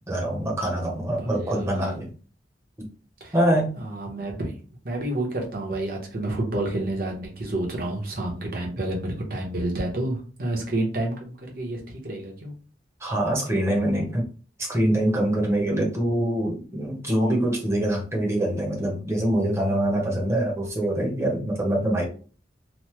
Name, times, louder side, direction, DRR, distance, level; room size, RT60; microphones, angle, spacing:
voice 1, 0.0-2.1 3.3-3.8 13.0-14.2 14.6-22.0, right 1 dB, 15° right, -2 dB, 0.8 m, -24 dB
voice 2, 1.0-2.0 3.2-3.3 3.8-4.6 4.8-12.5, right 1 dB, 55° right, 0 dB, 0.9 m, -29 dB
3.1 x 2.1 x 3.1 m, 0.39 s
head